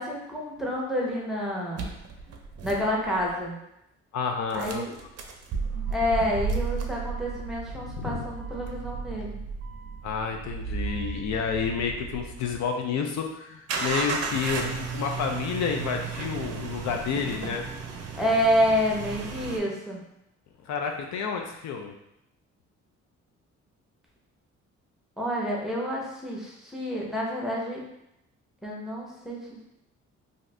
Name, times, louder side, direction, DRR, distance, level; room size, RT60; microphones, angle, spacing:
voice 1, 0.0-1.9 2.6-3.6 4.5-4.9 5.9-9.4 18.1-20.0 25.2-27.8 28.6-29.6, equal, ahead, -3 dB, 0.8 m, -28 dB
sound 1, 1.8-3.4 4.5-12.6 13.7-19.6, right 4 dB, 55° right, 0.5 m, -34 dB
voice 2, 4.1-4.9 7.7-8.2 10.0-17.6 20.6-21.9, left 6 dB, 65° left, 3 dB, 0.4 m, -30 dB
2.6 x 2.4 x 3.2 m, 0.83 s
cardioid pair, 90°, 30 cm